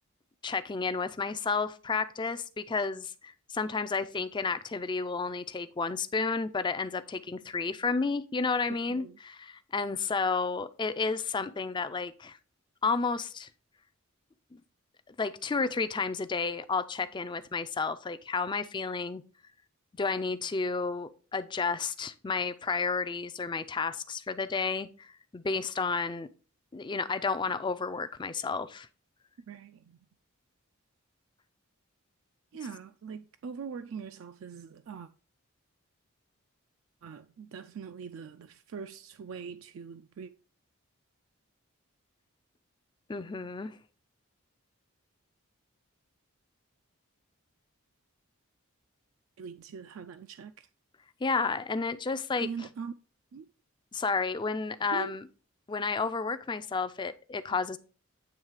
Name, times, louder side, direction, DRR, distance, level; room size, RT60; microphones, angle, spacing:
voice 1, 0.4-12.4 12.8-13.5 14.5-14.6 15.1-19.2 20.0-26.3 26.7-28.9 43.1-43.8 51.2-52.5 53.9-55.2 55.7-57.8, left 4 dB, 20° left, 0.3 m, -31 dB
voice 2, 8.7-9.2 29.5-30.0 32.5-35.1 37.0-40.3 49.4-50.7 52.4-52.9 53.3-53.5 54.9-55.2, right 6 dB, 60° right, 0.3 m, -42 dB
8.8 x 3.2 x 4.7 m
head